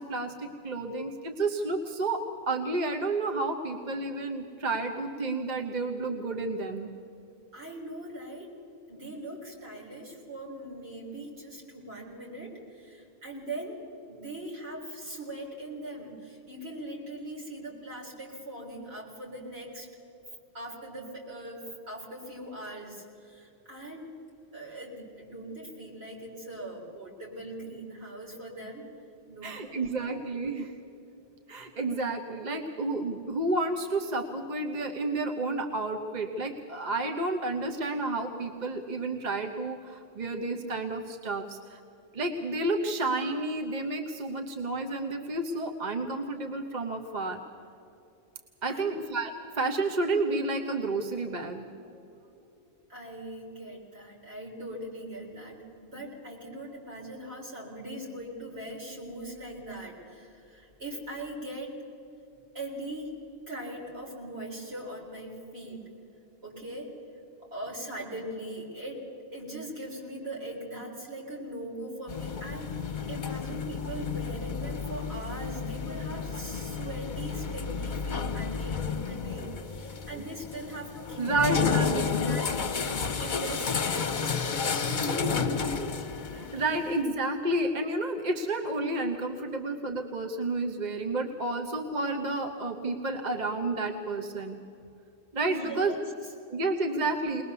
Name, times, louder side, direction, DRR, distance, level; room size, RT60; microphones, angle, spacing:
voice 1, 0.0-6.9 29.4-30.7 31.5-41.8 42.1-47.4 48.6-51.7 51.9-52.0 81.2-82.0 86.3-94.6 95.3-95.9 96.5-97.4, right 2 dB, 40° right, 3 dB, 1.1 m, -31 dB
voice 2, 7.5-8.6 8.9-19.9 20.5-24.1 24.5-28.9 29.3-30.5 48.7-48.9 52.9-61.8 62.5-65.9 66.4-66.9 67.4-69.0 69.3-82.5 83.2-84.2 84.8-85.7 95.5-96.3, right 1 dB, 70° right, -2 dB, 4.2 m, -40 dB
sound 1, 72.1-87.0, left 5 dB, 50° left, 0.9 m, -31 dB
21.5 x 20.0 x 6.9 m, 2.8 s
omnidirectional pair, 1.1 m